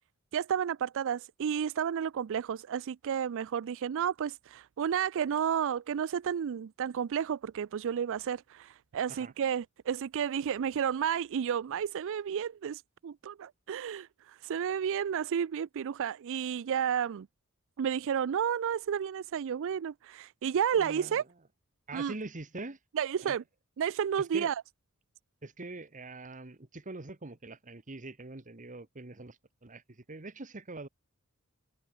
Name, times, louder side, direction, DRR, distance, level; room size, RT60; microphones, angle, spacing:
voice 1, 0.3-17.3 17.8-21.2 21.9-22.1 23.0-23.4 23.8-24.6, right 8 dB, 65° right, 0.4 m, -31 dB
voice 2, 20.7-21.2 21.9-22.8 23.2-23.4 24.2-24.5 25.4-30.9, right 2 dB, 35° right, 1.4 m, -43 dB
head